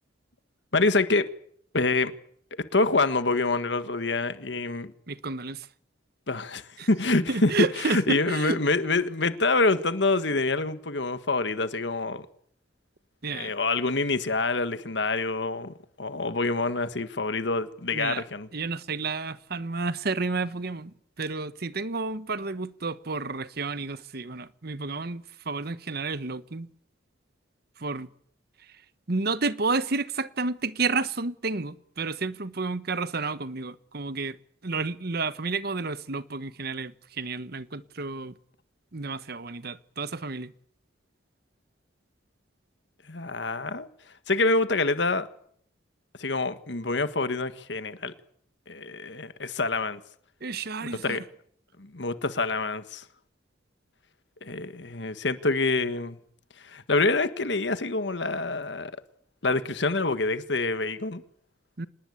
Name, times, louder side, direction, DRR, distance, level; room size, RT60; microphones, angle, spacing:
voice 1, 0.7-1.3 1.7-2.1 2.5-4.9 6.3-12.2 13.3-18.5 43.1-43.9 44.3-45.3 46.2-48.1 48.7-50.0 50.8-51.2 51.8-53.0 54.4-56.2 56.6-58.9 59.4-61.2, left 3 dB, 65° left, 1.6 m, -26 dB
voice 2, 5.1-5.7 6.8-6.9 7.3-8.0 8.3-8.6 13.2-13.5 17.9-18.2 18.5-26.7 27.8-28.1 29.1-34.4 34.6-38.3 38.9-40.5 50.4-51.2 61.8-61.9, right 3 dB, 55° right, 1.1 m, -31 dB
26.0 x 19.5 x 8.4 m
head